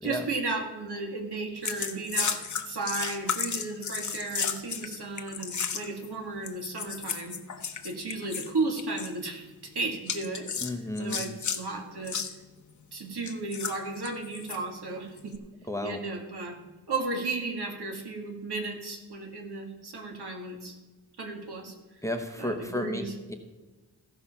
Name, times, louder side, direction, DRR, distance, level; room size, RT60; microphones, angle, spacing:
voice 1, 0.0-2.4 2.7-7.4 7.8-10.5 11.0-12.2 12.9-15.4 15.8-16.6 16.9-20.8 21.2-21.7 22.4-23.1, right 3 dB, 70° right, 2 dB, 2.0 m, -34 dB
sound 1, 1.6-6.1 6.4-8.5 8.8-9.1 10.1-11.6 12.0-12.3 13.2-14.6 15.2-15.4, left 6 dB, 45° left, 1.0 m, -33 dB
voice 2, 10.6-11.2 15.7-16.0 22.0-23.3, left 1 dB, 5° left, 5 dB, 0.9 m, -33 dB
15.5 x 5.5 x 5.7 m, 1.2 s
wide cardioid pair, 115°, 41 cm